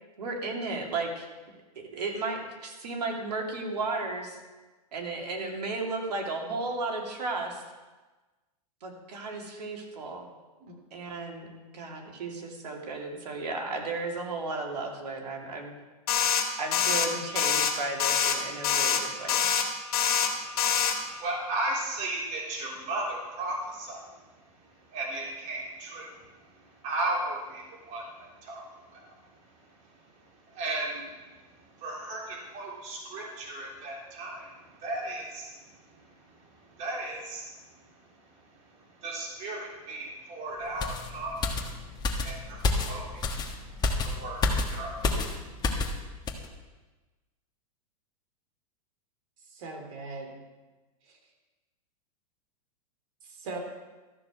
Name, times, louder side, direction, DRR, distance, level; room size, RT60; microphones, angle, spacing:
voice 1, 0.2-1.3 1.8-4.4 4.9-7.6 8.8-10.3 10.9-11.5 11.7-15.7 16.6-19.5, right 3 dB, 85° right, 1 dB, 2.7 m, -34 dB
sound 1, 16.1-16.4 16.7-17.1 17.4-17.7 18.0-18.4 18.6-19.0 19.3-19.6 19.9-20.3 20.6-20.9, left 8 dB, 65° left, 2.0 m, -25 dB
voice 2, 20.3-24.3 24.6-29.2 29.5-29.6 30.2-37.9 38.3-45.5, right 2 dB, 35° right, -2 dB, 3.4 m, -37 dB
sound 2, 40.8-46.0 46.3-46.5, left 3 dB, 20° left, 1.3 m, -29 dB
voice 3, 49.5-50.4 51.1-51.2 53.2-53.6, right 3 dB, 55° right, 3 dB, 3.0 m, -40 dB
13.5 x 6.9 x 6.4 m, 1.2 s
hypercardioid pair, 130°, 20 cm